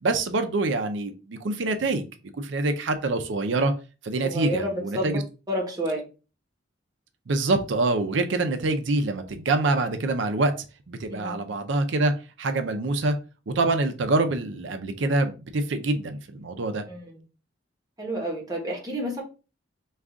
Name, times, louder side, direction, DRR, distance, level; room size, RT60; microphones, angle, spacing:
voice 1, 0.0-2.1 2.4-3.7 4.0-5.2 7.3-12.1 12.4-13.2 13.5-16.8, right 2 dB, 70° right, 7 dB, 0.5 m, -25 dB
voice 2, 4.2-5.2 5.5-6.1 11.1-11.4 16.9-17.2 18.0-19.2, equal, 20° right, -1 dB, 1.1 m, -30 dB
3.6 x 2.4 x 3.5 m, 0.33 s
head